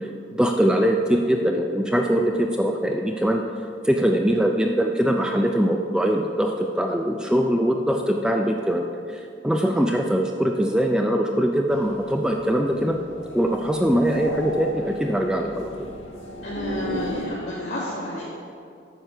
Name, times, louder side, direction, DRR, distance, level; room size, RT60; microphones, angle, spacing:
voice 1, 0.0-3.4 3.8-13.0 13.3-15.9, equal, 5° right, 2 dB, 0.4 m, -22 dB
sound 1, 11.7-17.3, left 1 dB, 90° left, 1.5 m, -35 dB
voice 2, 16.4-18.2, left 1 dB, 70° left, -9 dB, 1.9 m, -31 dB
8.9 x 6.5 x 5.7 m, 2.3 s
head